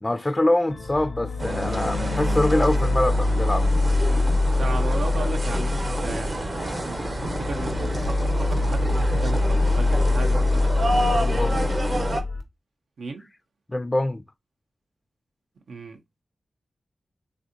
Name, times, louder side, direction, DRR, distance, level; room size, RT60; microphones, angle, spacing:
voice 1, 0.0-3.7 11.1-11.7 13.7-14.2, left 1 dB, 25° left, 0.3 m, -24 dB
sound 1, 0.7-12.4, left 2 dB, 85° left, 0.7 m, -24 dB
sound 2, 1.4-12.2, right 1 dB, 50° right, 0.7 m, -29 dB
voice 2, 4.0-10.7 13.0-13.3 15.7-16.0, right 4 dB, 85° right, 0.4 m, -35 dB
3.4 x 2.4 x 2.5 m
cardioid pair, 45°, 0 cm